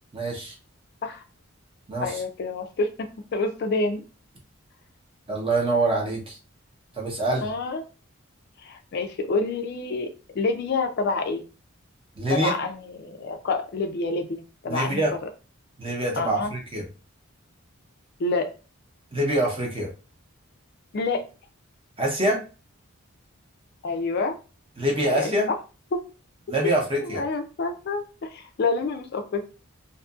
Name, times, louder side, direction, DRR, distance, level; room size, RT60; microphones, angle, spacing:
voice 1, 0.1-0.5 1.9-2.2 5.3-6.4 6.9-7.5 12.2-12.5 14.7-15.1 15.8-16.8 19.1-19.9 22.0-22.4 24.8-25.5 26.5-27.2, right 1 dB, 25° right, -1 dB, 0.7 m, -25 dB
voice 2, 2.0-4.0 7.4-7.8 8.6-10.1 10.3-11.4 12.3-15.0 16.1-16.5 18.2-18.5 20.9-21.2 23.8-24.4 25.0-25.4 25.9-26.0 27.0-29.4, left 3 dB, 50° left, 6 dB, 0.3 m, -28 dB
2.6 x 2.5 x 2.3 m, 0.33 s
head